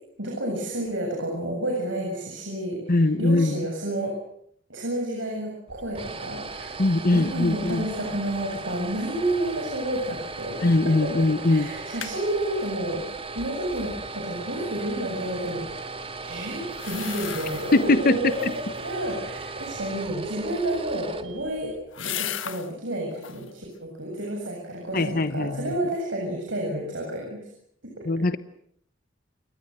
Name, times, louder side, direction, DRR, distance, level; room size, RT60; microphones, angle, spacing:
voice 1, 0.2-4.1 4.7-6.8 7.1-10.6 10.8-11.1 11.5-15.9 16.2-27.4 28.0-28.2, right 1 dB, 75° right, 0 dB, 7.7 m, -30 dB
voice 2, 2.9-3.6 6.8-7.8 10.6-11.7 17.7-18.2 24.9-25.7 28.1-28.4, left 2 dB, 50° left, 13 dB, 1.0 m, -21 dB
sound 1, 5.7-21.9, right 3 dB, 30° right, 2.1 m, -37 dB
sound 2, 10.6-10.9 11.2-11.3 11.7-12.2 16.7-17.9 18.3-18.8 20.8-22.7 23.1-23.5 24.0-24.7 25.0-25.1, left 10 dB, 85° left, 1.6 m, -37 dB
29.5 x 23.0 x 8.0 m, 0.69 s
head